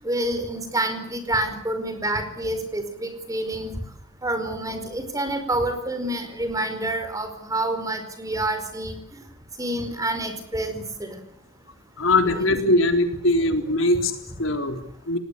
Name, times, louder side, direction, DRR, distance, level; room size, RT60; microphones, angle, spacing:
voice 1, 0.0-3.7 4.2-9.0 9.6-11.2, right 1 dB, 20° right, 8 dB, 4.9 m, -28 dB
voice 2, 12.0-15.2, left 2 dB, 85° left, 6 dB, 3.8 m, -21 dB
29.0 x 19.5 x 8.4 m, 0.69 s
head